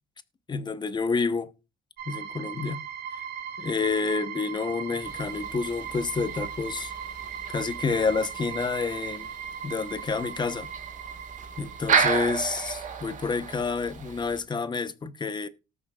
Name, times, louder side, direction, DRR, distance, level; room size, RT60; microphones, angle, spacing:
voice 1, 0.5-1.5 2.1-2.8 3.1-3.2 3.6-6.9 7.5-9.3 9.6-10.7 11.6-15.5, left 4 dB, 25° left, 0.9 m, -29 dB
sound 1, 2.0-12.3, right 8 dB, 80° right, 2.7 m, -38 dB
sound 2, 5.0-14.4, right 6 dB, 50° right, 1.7 m, -33 dB
18.5 x 6.4 x 2.4 m
cardioid pair, 110°, 17 cm